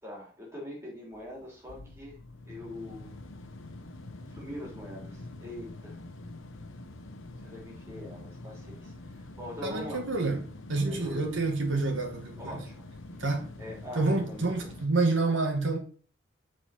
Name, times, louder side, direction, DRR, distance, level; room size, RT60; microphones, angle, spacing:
voice 1, 0.0-2.2 2.5-3.2 4.3-6.0 7.4-10.1 10.8-11.4 12.4-12.9 13.6-14.7, left 1 dB, 15° right, 3.4 m, -43 dB
sound 1, 1.1-14.9, left 2 dB, 90° left, 1.0 m, -45 dB
voice 2, 9.6-10.4 10.7-12.6 13.2-13.5 14.0-15.8, right 3 dB, 75° right, 2.2 m, -28 dB
7.5 x 4.9 x 5.8 m
head